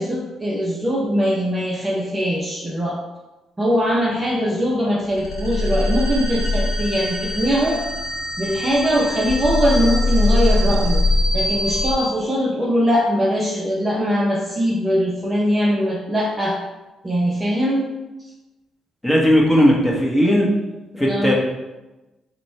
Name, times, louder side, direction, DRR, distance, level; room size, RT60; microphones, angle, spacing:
voice 1, 0.0-3.0 3.6-7.8 8.4-11.0 11.3-16.6 17.0-17.8 20.9-21.3, equal, 20° right, -2 dB, 0.5 m, -21 dB
sound 1, 5.1-12.0, left 1 dB, 80° left, 0.9 m, -21 dB
voice 2, 19.0-20.5 21.0-21.3, equal, 10° left, -3 dB, 1.0 m, -16 dB
4.1 x 2.1 x 4.3 m, 1.1 s
cardioid pair, 90°, 0 cm